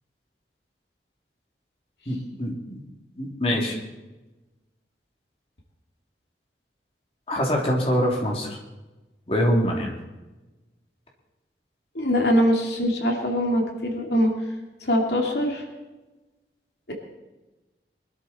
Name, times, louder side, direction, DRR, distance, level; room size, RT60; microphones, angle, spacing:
voice 1, 2.1-2.8 3.1-3.7 7.3-8.5 9.3-9.9, equal, 35° left, -1 dB, 2.8 m, -24 dB
voice 2, 11.9-14.3 14.8-15.6 16.9-17.0, equal, 70° left, 1 dB, 2.5 m, -22 dB
23.0 x 13.0 x 4.3 m, 1.1 s
head